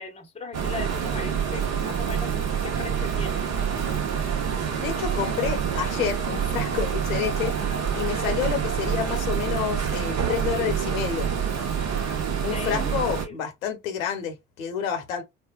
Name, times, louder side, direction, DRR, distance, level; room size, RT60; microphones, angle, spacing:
voice 1, 0.0-2.3 2.6-3.4 12.5-12.9 13.2-13.4, left 4 dB, 15° left, 0.9 m, -37 dB
sound 1, 0.5-13.3, right 7 dB, 40° right, 0.9 m, -27 dB
voice 2, 4.8-7.5 7.9-11.3 12.4-15.2, left 8 dB, 70° left, 1.0 m, -29 dB
4.4 x 2.1 x 2.3 m
figure-of-eight pair, 60°, 41 cm